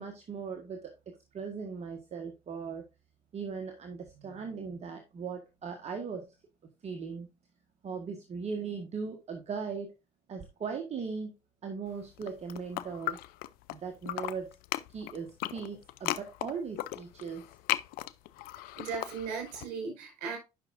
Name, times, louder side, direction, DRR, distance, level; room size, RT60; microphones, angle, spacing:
voice 1, 0.0-2.8 3.3-6.3 6.8-7.3 7.8-9.9 10.3-11.3 11.6-13.2 13.7-14.6 14.9-17.4, right 5 dB, 45° right, 1.6 m, -38 dB
sound 1, 12.1-13.8 14.0-19.7, left 16 dB, 70° left, 0.6 m, -36 dB
voice 2, 18.8-20.4, right 5 dB, 75° right, 4.7 m, -37 dB
11.0 x 5.9 x 2.6 m
supercardioid pair, 70°, 16 cm